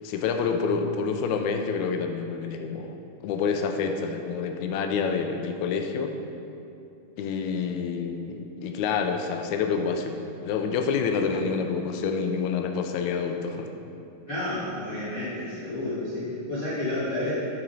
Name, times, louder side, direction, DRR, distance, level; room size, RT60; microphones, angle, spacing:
voice 1, 0.0-3.0 3.2-6.1 7.2-13.7, left 5 dB, 80° left, 5 dB, 1.7 m, -28 dB
voice 2, 14.2-17.3, left 1 dB, 40° left, -12 dB, 1.2 m, -30 dB
12.0 x 4.1 x 4.1 m, 2.6 s
omnidirectional pair, 3.8 m